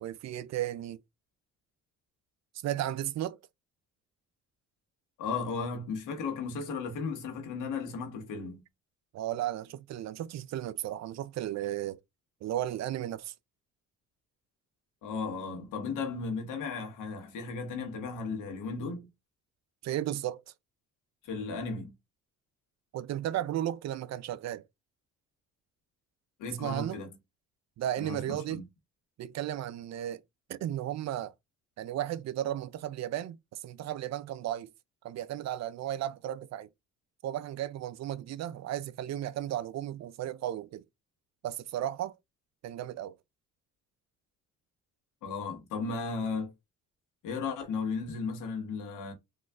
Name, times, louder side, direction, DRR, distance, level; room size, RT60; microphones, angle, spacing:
voice 1, 0.0-1.0 2.6-3.4 9.1-12.0 12.4-13.3 19.8-20.4 22.9-24.6 26.6-27.0 27.8-28.6 29.2-30.2 30.5-31.3 31.8-34.7 35.0-36.7 37.2-40.8 41.4-42.2 42.6-43.1, right 12 dB, 60° right, 0.4 m, -34 dB
voice 2, 5.2-8.6 15.0-19.1 21.2-21.9 26.4-27.1 28.0-28.7 45.2-46.5 47.2-49.1, left 4 dB, 85° left, 1.4 m, -35 dB
3.8 x 3.1 x 2.3 m
cardioid pair, 90°, 30 cm